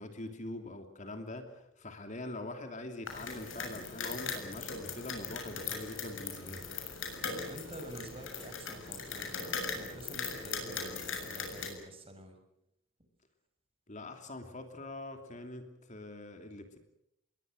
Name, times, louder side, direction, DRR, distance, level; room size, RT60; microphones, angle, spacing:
voice 1, 0.0-6.6 13.9-16.8, left 2 dB, 40° left, 6 dB, 2.9 m, -43 dB
sound 1, 3.1-11.7, left 5 dB, 80° left, 6.9 m, -39 dB
voice 2, 7.2-12.4, right 1 dB, 30° right, 5 dB, 6.0 m, -48 dB
28.5 x 22.0 x 6.6 m, 0.80 s
head